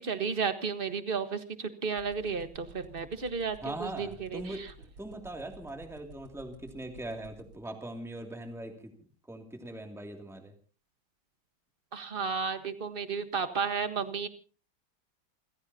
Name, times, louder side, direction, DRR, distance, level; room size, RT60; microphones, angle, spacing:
voice 1, 0.0-4.6 11.9-14.3, right 5 dB, 30° right, 9 dB, 1.4 m, -33 dB
sound 1, 2.0-7.5, right 3 dB, 70° right, 4.0 m, -50 dB
voice 2, 3.6-4.7 5.0-8.9 9.3-10.5, right 1 dB, ahead, 3 dB, 2.4 m, -41 dB
29.0 x 15.5 x 2.8 m, 0.37 s
omnidirectional pair, 2.2 m